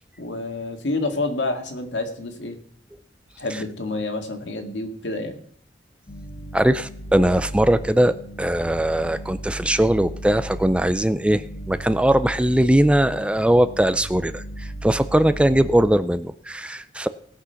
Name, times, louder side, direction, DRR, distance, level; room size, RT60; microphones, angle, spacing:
voice 1, 0.2-2.6 3.4-5.4, left 2 dB, 85° left, 4 dB, 2.0 m, -28 dB
sound 1, 6.1-15.8, right 1 dB, 40° left, 1.4 m, -36 dB
voice 2, 6.5-17.1, right 1 dB, 5° right, 13 dB, 0.4 m, -20 dB
18.0 x 6.2 x 5.8 m, 0.63 s
head